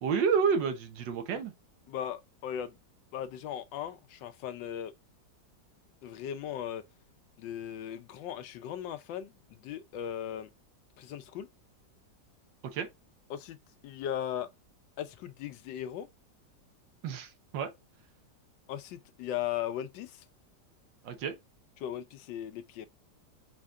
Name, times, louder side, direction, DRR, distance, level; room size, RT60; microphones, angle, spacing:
voice 1, 0.0-1.5 12.6-12.9 17.0-17.7 21.0-21.4, right 6 dB, 80° right, 1.5 m, -29 dB
voice 2, 1.9-2.7 3.1-4.9 6.0-6.8 7.4-10.5 11.0-11.5 13.3-13.6 13.8-14.5 15.0-16.1 18.7-20.2 21.8-22.9, left 10 dB, 85° left, 1.3 m, -38 dB
4.6 x 4.3 x 2.3 m
omnidirectional pair, 2.0 m